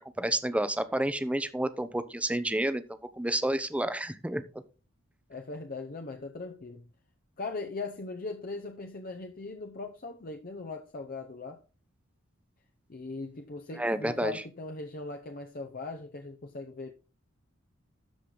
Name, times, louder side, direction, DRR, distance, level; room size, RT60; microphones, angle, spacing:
voice 1, 0.2-2.8 3.1-4.4 13.8-14.4, right 1 dB, 5° right, 0.7 m, -29 dB
voice 2, 5.3-6.9 7.4-11.6 12.9-16.9, left 3 dB, 45° left, 0.8 m, -39 dB
12.5 x 5.0 x 3.8 m
head